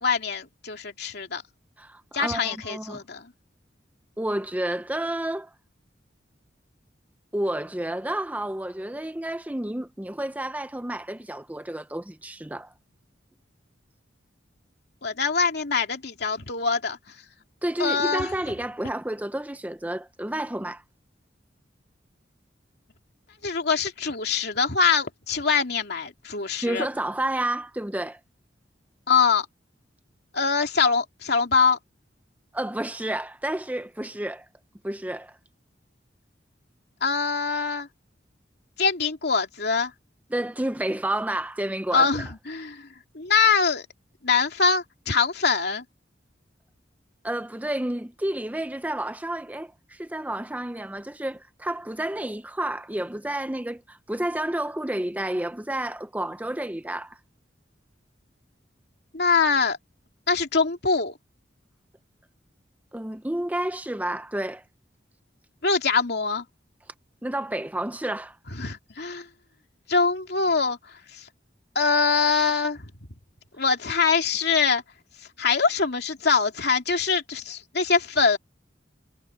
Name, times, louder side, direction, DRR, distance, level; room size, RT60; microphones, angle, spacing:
voice 1, 0.0-1.4 2.1-3.3 15.0-17.0 17.8-18.3 23.4-26.9 29.1-29.5 30.3-31.8 37.0-37.9 38.8-39.9 41.9-42.9 43.1-43.9 44.2-45.8 59.1-59.8 60.3-61.1 65.6-66.4 68.5-69.3 69.9-70.8 71.1-71.2 71.7-72.9 73.6-74.8 75.4-78.4, left 5 dB, 65° left, 2.8 m, -23 dB
voice 2, 1.8-3.0 4.2-5.5 7.3-12.7 17.6-20.8 26.6-28.2 32.5-34.5 34.8-35.4 40.3-42.1 47.2-57.2 62.9-64.6 67.2-68.4, right 1 dB, 10° right, 0.7 m, -30 dB
head